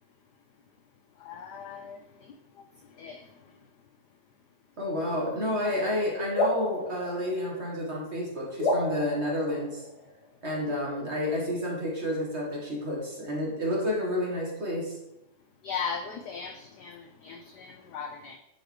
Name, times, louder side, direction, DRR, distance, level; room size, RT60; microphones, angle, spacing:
voice 1, 1.2-2.0 3.0-3.3 15.6-18.4, left 6 dB, 80° left, 5 dB, 0.9 m, -37 dB
voice 2, 4.8-9.8 10.4-15.0, left 1 dB, 35° right, -3 dB, 1.3 m, -30 dB
sound 1, 6.4-8.0 8.6-10.3, left 1 dB, 55° left, 1.7 m, -31 dB
9.1 x 3.9 x 3.2 m, 0.89 s
omnidirectional pair, 2.3 m